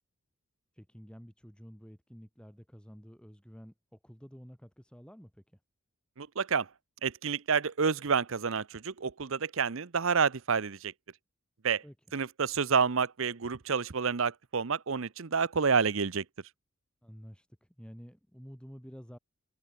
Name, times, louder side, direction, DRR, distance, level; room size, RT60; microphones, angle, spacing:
voice 1, 0.7-5.6 11.8-12.0 17.0-19.2, equal, 5° left, 4.1 m, -50 dB
voice 2, 6.2-6.7 7.0-10.9 11.6-11.8 12.1-16.2, right 5 dB, 65° right, 0.7 m, -29 dB
head